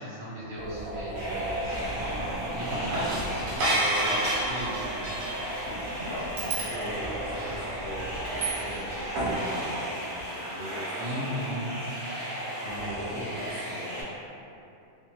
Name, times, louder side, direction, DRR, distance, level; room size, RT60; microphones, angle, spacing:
voice 1, 0.0-5.1 11.0-11.8 12.6-13.4, equal, 65° right, -10 dB, 0.9 m, -38 dB
sound 1, 0.6-8.9 9.2-9.3, right 1 dB, 85° right, 1.1 m, -31 dB
sound 2, 1.1-14.0, right 1 dB, 30° right, 0.6 m, -35 dB
voice 2, 5.8-11.9 12.6-14.0, left 1 dB, 75° left, -11 dB, 0.4 m, -41 dB
2.5 x 2.1 x 2.8 m, 2.7 s
omnidirectional pair, 1.4 m